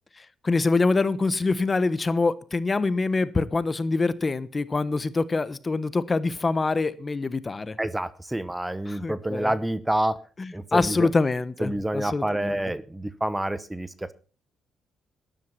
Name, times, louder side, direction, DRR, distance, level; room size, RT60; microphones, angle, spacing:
voice 1, 0.4-7.8 8.9-9.5 10.4-12.6, left 3 dB, 25° left, 1.1 m, -25 dB
voice 2, 7.8-10.2 10.5-11.1 11.6-14.1, right 1 dB, 10° right, 0.9 m, -28 dB
12.5 x 11.0 x 5.8 m
cardioid pair, 90°, 0 cm